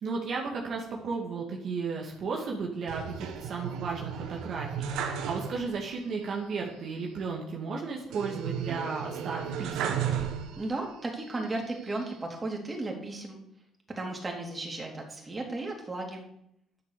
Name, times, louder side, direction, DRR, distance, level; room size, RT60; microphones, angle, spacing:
voice 1, 0.0-10.0, right 4 dB, 60° right, -1 dB, 2.3 m, -34 dB
sound 1, 2.9-5.9 6.2-6.3 8.1-10.9 11.4-12.2, right 8 dB, 80° right, 1.6 m, -34 dB
voice 2, 10.6-13.4 14.0-16.2, right 2 dB, 25° right, 1 dB, 3.7 m, -35 dB
11.5 x 7.2 x 6.9 m, 0.76 s
supercardioid pair, 70°, 0 cm